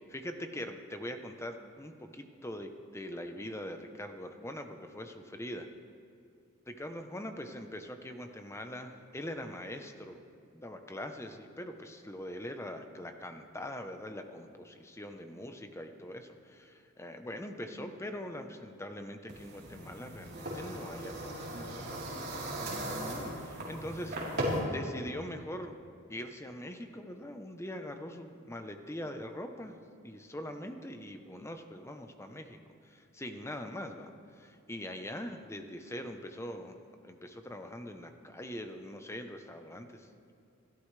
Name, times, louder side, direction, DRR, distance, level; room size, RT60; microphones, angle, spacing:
voice 1, 0.1-5.7 6.7-10.2 10.5-24.3 24.6-25.8 26.1-29.8 30.0-40.3, left 1 dB, 10° left, 6 dB, 0.8 m, -43 dB
sound 1, 19.3-24.6, right 1 dB, 50° right, 3.7 m, -38 dB
28.5 x 13.5 x 3.3 m, 2.4 s
head